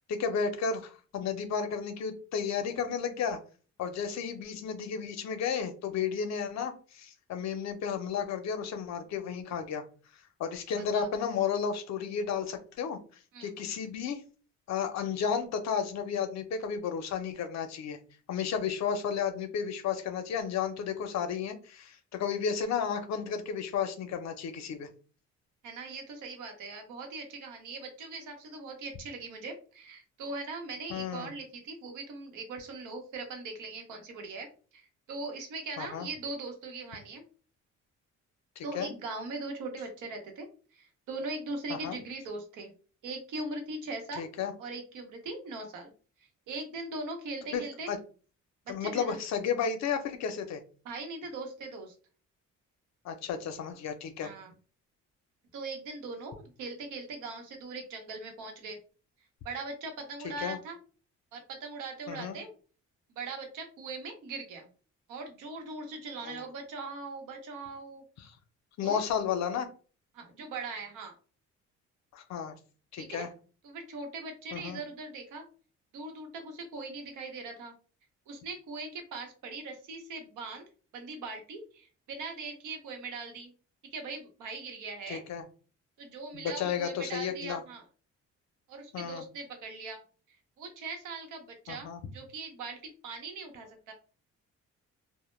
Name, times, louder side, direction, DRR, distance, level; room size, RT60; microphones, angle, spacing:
voice 1, 0.1-3.4 3.8-9.8 10.4-13.0 13.4-14.2 14.7-18.0 18.3-24.9 30.9-31.3 35.8-36.1 38.6-38.9 41.7-42.0 44.2-44.5 47.5-48.0 48.7-50.6 53.0-54.3 60.4-60.6 62.1-62.4 66.2-66.4 68.2-68.3 68.8-69.7 72.1-72.5 72.9-73.3 74.5-74.8 85.1-85.4 86.3-87.6 88.9-89.2 91.7-92.0, left 7 dB, 60° left, 8 dB, 0.6 m, -33 dB
voice 2, 25.6-34.5 34.7-37.2 38.6-40.5 40.7-42.7 43.0-45.9 46.5-47.9 48.8-49.2 50.8-51.9 54.2-54.5 55.5-58.8 59.4-60.8 61.3-62.5 63.1-64.7 65.1-68.0 68.8-69.0 70.1-71.1 73.0-73.3 73.6-75.5 75.9-77.7 78.3-80.6 80.9-83.5 83.9-85.2 86.0-87.8 88.7-90.0 90.6-93.9, right 3 dB, 85° right, 3 dB, 0.8 m, -40 dB
2.1 x 2.1 x 3.1 m, 0.38 s
cardioid pair, 90°, 30 cm